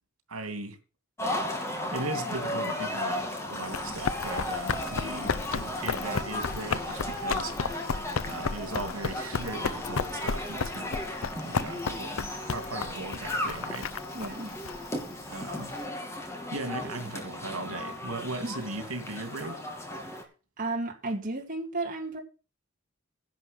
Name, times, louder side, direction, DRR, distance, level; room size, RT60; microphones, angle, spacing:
voice 1, 0.3-0.8 1.9-7.5 8.3-11.0 11.4-13.9 15.3-15.7 16.5-19.6, right 2 dB, 85° right, 2.8 m, -38 dB
sound 1, 1.2-20.2, left 1 dB, 15° left, 2.4 m, -35 dB
Run, 3.5-15.8, left 5 dB, 70° left, 0.7 m, -34 dB
voice 2, 14.1-14.5 18.4-18.6 20.6-22.2, right 2 dB, 40° right, 2.4 m, -33 dB
11.0 x 6.3 x 7.9 m
head